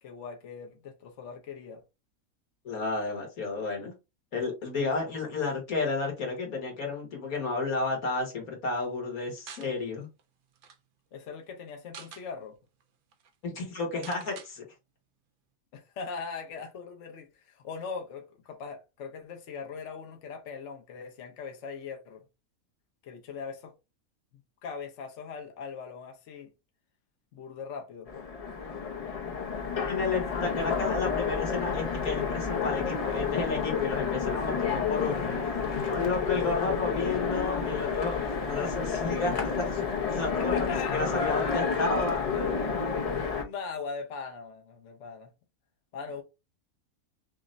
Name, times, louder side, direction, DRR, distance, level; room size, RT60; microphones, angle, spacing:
voice 1, 0.0-1.8 11.1-12.5 15.7-22.2 23.0-23.7 24.6-26.5 27.3-28.1 30.6-30.8 40.4-41.0 43.4-45.3 45.9-46.2, left 5 dB, 60° left, 1.1 m, -40 dB
voice 2, 2.6-3.9 4.3-10.1 13.4-14.6 29.9-39.8 40.1-40.5 40.9-42.2, left 3 dB, 90° left, 1.9 m, -32 dB
sound 1, 9.5-9.7 10.2-10.3 10.5-10.8 11.7-12.3 12.8-12.9 13.1-13.3 14.0-14.5, right 6 dB, 60° right, 0.5 m, -46 dB
Train, 28.1-43.4, left 5 dB, 40° left, 0.5 m, -30 dB
5.8 x 2.1 x 2.6 m
omnidirectional pair, 1.5 m